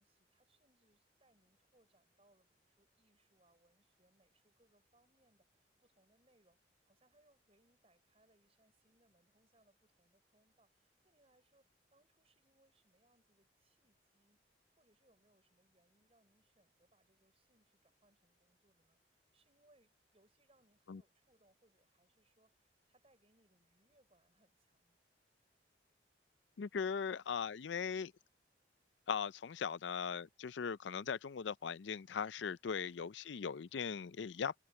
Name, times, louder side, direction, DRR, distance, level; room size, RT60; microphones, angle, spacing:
voice 1, 0.0-25.0, right 1 dB, 35° right, 6.2 m, -74 dB
voice 2, 26.6-28.1 29.1-34.6, left 6 dB, 85° left, 0.5 m, -39 dB
head